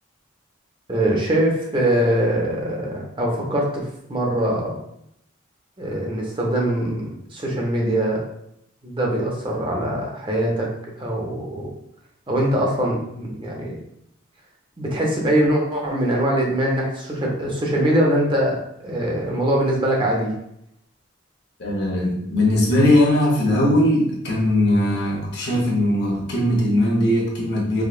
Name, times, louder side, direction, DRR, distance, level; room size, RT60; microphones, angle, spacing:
voice 1, 0.9-3.8 4.1-4.8 5.8-8.2 8.8-10.7 11.0-11.7 12.3-13.8 14.8-20.3, right 1 dB, 25° right, -2 dB, 0.7 m, -22 dB
voice 2, 21.6-27.8, left 1 dB, 55° left, -3 dB, 1.0 m, -19 dB
4.8 x 2.3 x 2.4 m, 0.77 s
head